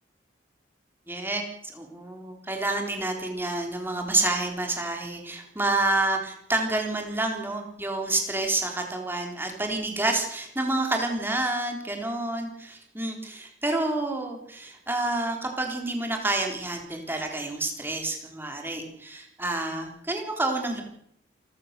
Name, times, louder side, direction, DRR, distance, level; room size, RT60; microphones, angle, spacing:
voice 1, 1.1-20.8, right 2 dB, 10° right, 3 dB, 3.7 m, -29 dB
28.0 x 14.5 x 6.7 m, 0.72 s
head